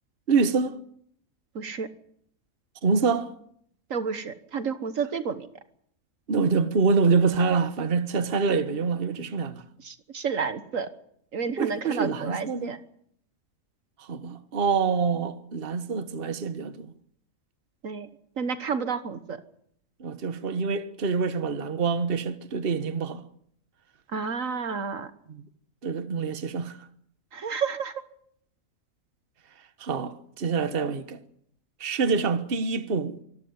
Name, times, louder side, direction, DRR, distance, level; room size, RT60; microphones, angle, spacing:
voice 1, 0.3-0.8 2.8-3.3 6.3-9.6 11.6-12.8 14.0-16.9 20.0-23.2 25.3-25.4 25.8-26.9 29.8-31.2 31.8-33.2, right 5 dB, 40° right, 1.4 m, -26 dB
voice 2, 1.5-1.9 3.9-5.5 9.8-10.9 11.3-12.8 17.8-18.1 18.4-19.4 24.1-25.1 27.3-27.9, right 5 dB, 65° right, 1.6 m, -30 dB
25.0 x 13.5 x 9.6 m
omnidirectional pair, 1.5 m